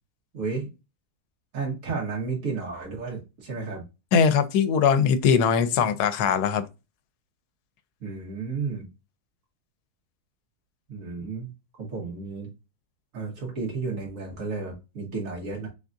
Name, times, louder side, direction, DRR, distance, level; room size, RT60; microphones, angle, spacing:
voice 1, 0.3-0.7 1.5-3.8 8.0-8.9 10.9-11.5 11.8-12.5 13.1-15.7, right 4 dB, 55° right, 1.7 m, -32 dB
voice 2, 4.1-6.6, left 6 dB, 85° left, 1.1 m, -21 dB
3.9 x 3.5 x 2.5 m
omnidirectional pair, 1.6 m